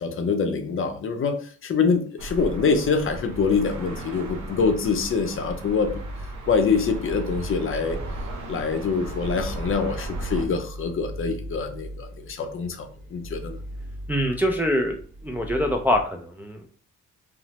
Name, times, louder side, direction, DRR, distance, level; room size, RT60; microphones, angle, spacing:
voice 1, 0.0-6.0 6.5-8.0 8.5-13.6, left 5 dB, 45° left, 6 dB, 0.5 m, -25 dB
sound 1, 2.2-10.4, right 2 dB, 80° right, 0.7 m, -36 dB
sound 2, 5.8-16.0, equal, 40° right, 0.9 m, -38 dB
voice 2, 14.1-15.0 15.2-16.8, equal, 5° right, 2 dB, 0.3 m, -24 dB
2.9 x 2.0 x 2.8 m, 0.43 s
cardioid pair, 90°, 30 cm